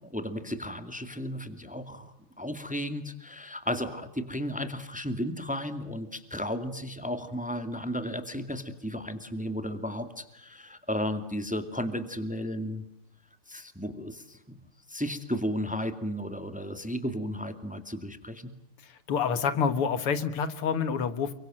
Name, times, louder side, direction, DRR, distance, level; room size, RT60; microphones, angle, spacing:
voice 1, 0.0-12.8 13.5-14.6 14.9-18.5, equal, 5° right, 8 dB, 2.0 m, -34 dB
voice 2, 19.1-21.3, left 6 dB, 80° left, 11 dB, 2.5 m, -27 dB
29.5 x 24.5 x 7.7 m, 0.80 s
omnidirectional pair, 2.4 m